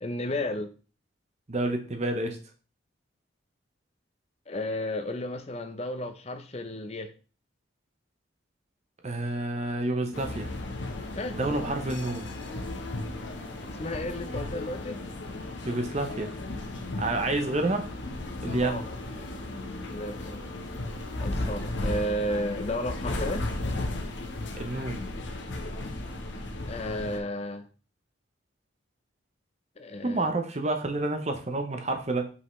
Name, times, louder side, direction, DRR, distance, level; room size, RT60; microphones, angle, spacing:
voice 1, 0.0-0.7 4.5-7.1 11.2-11.4 13.7-15.0 17.2-17.4 18.6-18.8 19.9-20.4 21.2-23.5 26.7-27.7 29.8-30.3, left 1 dB, 30° left, 8 dB, 0.7 m, -33 dB
voice 2, 1.5-2.4 9.0-10.5 11.3-12.3 15.6-16.3 17.0-17.9 18.4-18.9 24.6-25.0 30.0-32.3, right 2 dB, 35° right, 5 dB, 0.7 m, -29 dB
sound 1, 10.1-27.2, left 2 dB, 65° left, 1.0 m, -35 dB
5.5 x 5.4 x 3.2 m, 0.36 s
head